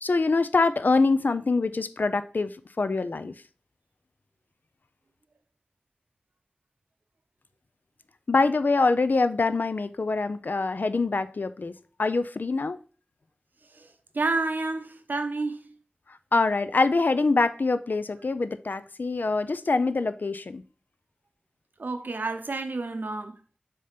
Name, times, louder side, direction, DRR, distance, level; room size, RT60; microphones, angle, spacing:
voice 1, 0.0-3.3 8.3-11.7 12.0-12.8 16.3-20.6, left 3 dB, 75° left, 0.4 m, -24 dB
voice 2, 13.7-15.7 21.8-23.6, right 3 dB, 80° right, 0.7 m, -30 dB
6.6 x 2.9 x 5.1 m
wide cardioid pair, 55°, 3 cm